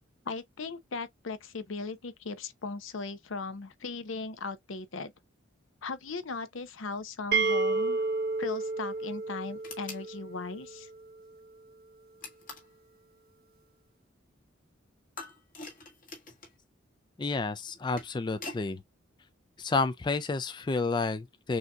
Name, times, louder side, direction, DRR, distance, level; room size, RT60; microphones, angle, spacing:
voice 1, 0.3-5.1 5.8-8.0 8.4-10.9, left 4 dB, 75° left, 0.7 m, -38 dB
sound 1, 7.3-11.0, right 3 dB, 50° right, 0.6 m, -31 dB
sound 2, 9.6-10.1 12.2-12.8 15.2-16.6 17.7-18.7, left 3 dB, 45° left, 1.5 m, -44 dB
voice 2, 17.2-18.8 19.6-21.6, left 3 dB, 20° left, 0.3 m, -30 dB
6.3 x 2.8 x 2.3 m
head